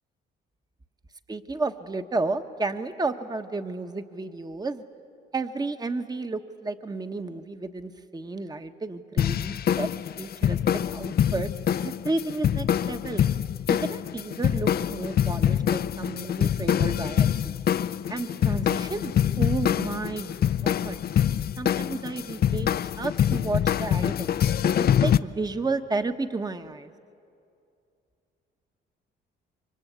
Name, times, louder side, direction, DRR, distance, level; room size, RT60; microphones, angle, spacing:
voice 1, 1.3-4.8 5.3-9.9 10.2-10.6 10.9-11.5 11.8-13.2 13.7-17.5 18.1-20.3 20.6-21.0 21.6-24.3 25.0-26.9, right 3 dB, 20° right, 8 dB, 1.2 m, -32 dB
sound 1, 9.2-25.2, left 9 dB, 50° left, 0.5 m, -25 dB
28.5 x 24.0 x 8.2 m, 2.5 s
cardioid pair, 90°, 20 cm